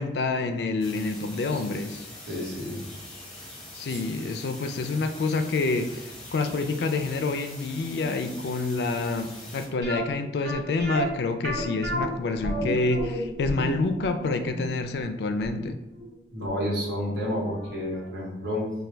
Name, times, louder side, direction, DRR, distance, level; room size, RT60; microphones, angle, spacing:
voice 1, 0.0-2.1 3.7-15.8, left 3 dB, 65° left, 7 dB, 0.3 m, -28 dB
sound 1, 0.8-9.7, left 1 dB, 5° left, 0.8 m, -43 dB
voice 2, 2.3-2.8 3.9-4.0 16.3-18.7, equal, 80° right, -4 dB, 1.2 m, -30 dB
sound 2, 9.8-16.7 17.0-17.1 17.6-17.8 18.0-18.1, right 1 dB, 55° right, 0.8 m, -32 dB
4.3 x 2.2 x 3.3 m, 0.95 s
head